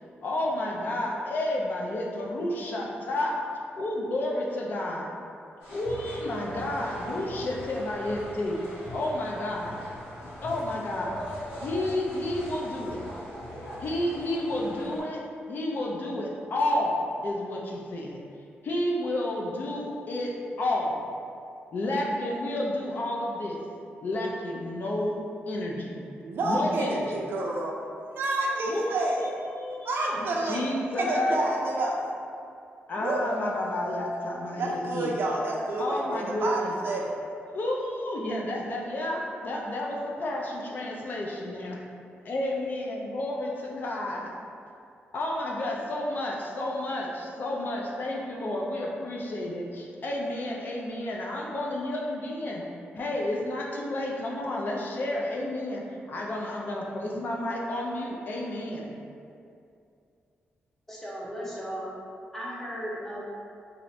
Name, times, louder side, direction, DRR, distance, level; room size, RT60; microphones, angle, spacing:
voice 1, 0.2-3.4 3.8-5.1 5.7-8.6 8.9-9.8 10.2-11.2 11.6-13.0 13.8-18.2 18.6-21.1 21.7-23.6 24.0-26.0 26.4-27.2 28.7-31.4 32.9-35.1 35.8-36.8 37.5-41.8 42.2-44.3 45.1-52.6 52.9-58.9, left 1 dB, 50° left, -2 dB, 0.4 m, -31 dB
sound 1, 5.6-15.0, equal, 85° left, 1.4 m, -41 dB
voice 2, 26.2-27.8 28.2-29.2 29.8-30.6 31.0-32.0 33.0-34.2 34.6-37.1, right 2 dB, 60° right, -2 dB, 0.4 m, -29 dB
voice 3, 60.9-61.9 62.3-63.2, equal, 10° left, -6 dB, 0.7 m, -36 dB
2.6 x 2.5 x 3.1 m, 2.5 s
cardioid pair, 115°, 4 cm